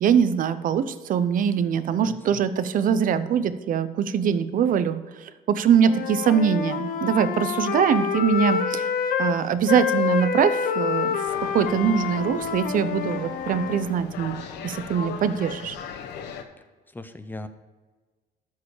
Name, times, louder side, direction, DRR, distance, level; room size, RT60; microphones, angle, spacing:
voice 1, 0.0-8.9 9.2-11.2 11.5-14.4 14.6-15.7, right 7 dB, 55° right, 13 dB, 0.7 m, -23 dB
voice 2, 1.9-2.4 16.9-17.5, left 2 dB, 10° left, 10 dB, 0.7 m, -39 dB
Wind instrument woodwind instrument, 5.8-9.4 9.7-13.9, left 7 dB, 60° left, 0.9 m, -27 dB
sound 1, 11.3-16.4, left 6 dB, 85° left, 1.0 m, -38 dB
13.0 x 4.8 x 4.9 m, 1.3 s
cardioid pair, 110°, 17 cm